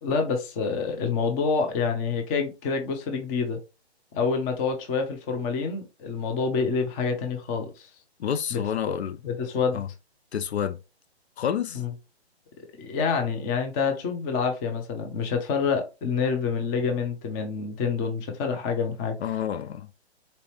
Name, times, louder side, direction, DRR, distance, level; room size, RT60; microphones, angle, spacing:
voice 1, 0.0-3.6 4.1-7.9 8.5-8.6 8.9-9.0 9.3-9.8 11.7-11.9 12.6-19.1, left 5 dB, 15° left, 0.6 m, -27 dB
voice 2, 8.2-9.2 9.7-9.9 10.3-10.8 11.4-11.8 19.2-19.9, left 9 dB, 75° left, 0.5 m, -29 dB
4.1 x 2.7 x 3.1 m
hypercardioid pair, 140°, 33 cm